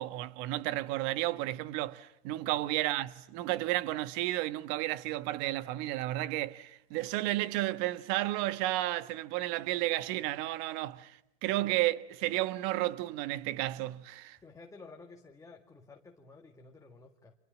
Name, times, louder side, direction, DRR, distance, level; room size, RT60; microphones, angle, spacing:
voice 1, 0.0-14.4, right 16 dB, 45° right, 1.3 m, -32 dB
voice 2, 2.4-2.7 11.5-11.8 14.4-17.4, left 3 dB, 10° left, 1.7 m, -53 dB
29.5 x 26.5 x 7.5 m
hypercardioid pair, 125°, 32 cm